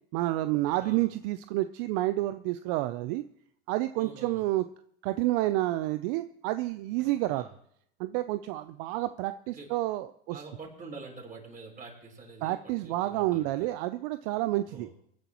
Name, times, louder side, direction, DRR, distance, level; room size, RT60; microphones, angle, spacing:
voice 1, 0.1-3.2 3.7-4.6 5.0-7.5 8.0-10.4 12.4-14.9, right 16 dB, 65° right, 11 dB, 0.7 m, -29 dB
voice 2, 0.8-1.1 4.0-4.5 7.3-7.5 9.5-9.7 10.3-13.7 14.7-14.9, right 3 dB, 25° right, -2 dB, 6.4 m, -46 dB
23.5 x 10.5 x 3.1 m, 0.70 s
hypercardioid pair, 95°, 30 cm